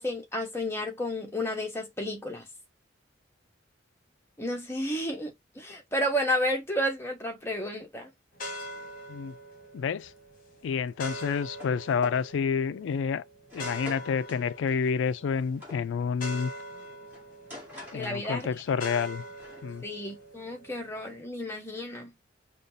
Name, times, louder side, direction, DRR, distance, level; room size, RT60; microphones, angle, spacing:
voice 1, 0.0-2.5 4.4-8.1 17.9-18.5 19.8-22.1, equal, 15° left, 1.0 m, -32 dB
sound 1, 8.3-21.2, equal, 45° left, 1.0 m, -43 dB
voice 2, 9.7-10.1 10.6-13.2 13.5-16.5 17.9-19.2 19.6-19.8, left 6 dB, 75° left, 0.3 m, -29 dB
sound 2, 11.1-11.8 12.0-12.3 12.9-13.0 13.5-15.9 17.1-18.6 18.9-19.6, left 2 dB, 10° right, 1.8 m, -47 dB
5.1 x 2.3 x 2.6 m
head